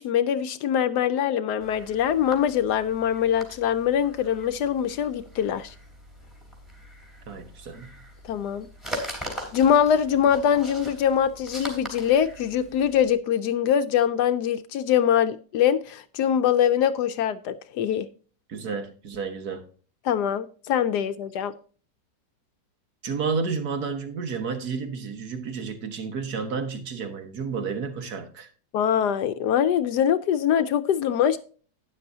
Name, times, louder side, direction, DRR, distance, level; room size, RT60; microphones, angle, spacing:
voice 1, 0.0-5.7 8.2-8.7 9.5-18.1 20.0-21.5 28.7-31.4, left 9 dB, 75° left, 1.1 m, -23 dB
sound 1, 1.6-13.1, equal, ahead, 3.3 m, -41 dB
voice 2, 7.3-8.0 18.5-19.7 23.0-28.5, right 5 dB, 65° right, 1.9 m, -31 dB
12.0 x 9.8 x 2.7 m
omnidirectional pair, 1.8 m